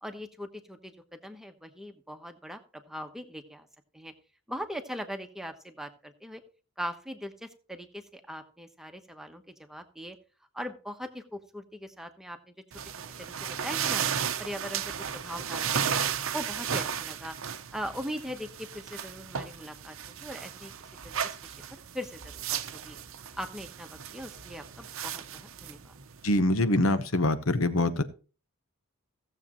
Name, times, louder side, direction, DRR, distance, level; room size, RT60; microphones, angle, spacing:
voice 1, 0.0-3.7 3.9-4.1 4.5-6.4 6.8-10.2 10.5-12.5 13.2-14.0 14.4-16.0 16.3-17.4 17.7-20.7 21.0-23.0 23.4-25.9, equal, ahead, 6 dB, 1.0 m, -40 dB
sound 1, 12.7-26.4, right 8 dB, 70° right, 0.7 m, -34 dB
voice 2, 26.2-28.0, left 1 dB, 75° left, 12 dB, 1.0 m, -24 dB
16.5 x 7.3 x 3.0 m, 0.36 s
head